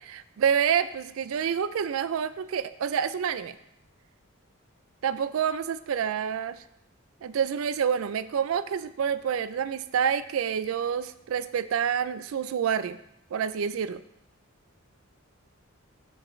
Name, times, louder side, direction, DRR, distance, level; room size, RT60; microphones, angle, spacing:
voice 1, 0.0-3.6 5.0-6.6 7.2-13.0 13.3-14.0, right 7 dB, 70° right, 15 dB, 0.3 m, -28 dB
7.6 x 6.9 x 3.1 m, 0.79 s
head